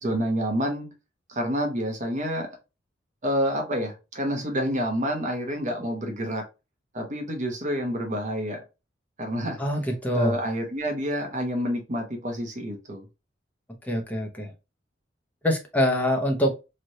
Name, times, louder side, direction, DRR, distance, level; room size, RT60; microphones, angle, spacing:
voice 1, 0.0-0.9 1.3-2.5 3.2-6.4 6.9-8.6 9.2-9.6 10.1-13.1, equal, 40° right, 3 dB, 0.9 m, -28 dB
voice 2, 9.6-10.3 13.9-14.5 15.4-16.5, left 1 dB, 10° left, 1 dB, 0.7 m, -24 dB
3.2 x 2.5 x 2.7 m, 0.27 s
head